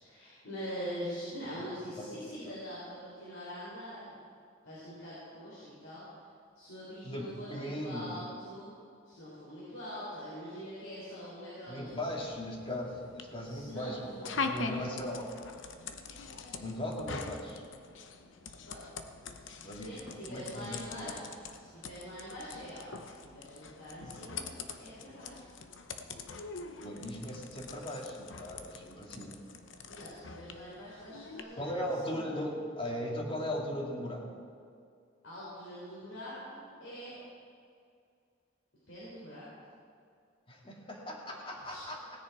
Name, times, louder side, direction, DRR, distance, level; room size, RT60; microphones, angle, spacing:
voice 1, 0.0-4.2 4.6-6.1 6.5-8.8 9.0-12.1 13.4-14.9 16.4-16.6 18.6-18.8 19.3-21.2 21.6-24.5 24.8-25.5 29.9-31.7 32.0-32.3 35.2-37.2 38.9-39.5 41.4-41.9, equal, 85° left, -8 dB, 3.9 m, -44 dB
voice 2, 1.8-2.6 7.0-8.2 11.7-15.3 16.6-17.6 19.6-21.2 26.8-29.4 31.6-34.3 40.5-42.0, left 1 dB, 30° left, 0 dB, 2.1 m, -38 dB
sound 1, 11.9-31.4, left 4 dB, 70° left, 0.9 m, -44 dB
17.5 x 10.0 x 4.8 m, 2.3 s
head